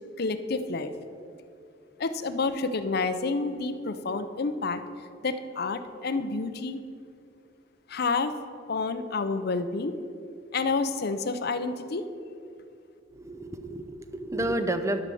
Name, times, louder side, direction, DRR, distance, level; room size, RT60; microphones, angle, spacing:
voice 1, 0.2-0.9 2.0-4.8 5.2-6.8 7.9-8.3 8.7-9.9 10.5-12.1, left 3 dB, 55° left, 10 dB, 0.6 m, -29 dB
voice 2, 13.1-15.0, right 1 dB, 15° right, 9 dB, 0.6 m, -30 dB
11.5 x 6.4 x 6.9 m, 2.5 s
head